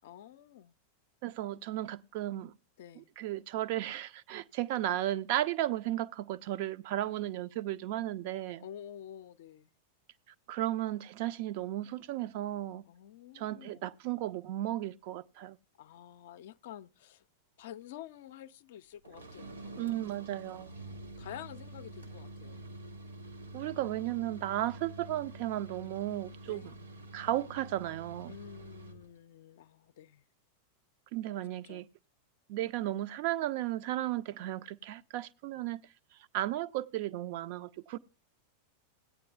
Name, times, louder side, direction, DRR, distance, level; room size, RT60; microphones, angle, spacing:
voice 1, 0.0-0.7 2.8-3.1 8.6-9.7 12.8-13.8 15.8-17.3 17.6-20.1 20.6-22.6 26.5-26.8 28.3-30.2 31.6-31.9, left 11 dB, 55° left, 0.4 m, -49 dB
voice 2, 1.2-2.6 3.0-8.6 10.5-12.8 13.3-15.6 19.8-20.7 23.5-26.7 27.1-28.3 31.1-31.9 32.5-35.8 36.3-38.0, right 14 dB, 50° right, 0.4 m, -34 dB
sound 1, 19.0-29.1, right 2 dB, 75° right, 1.1 m, -47 dB
17.0 x 8.9 x 2.3 m
figure-of-eight pair, 90°, 0 cm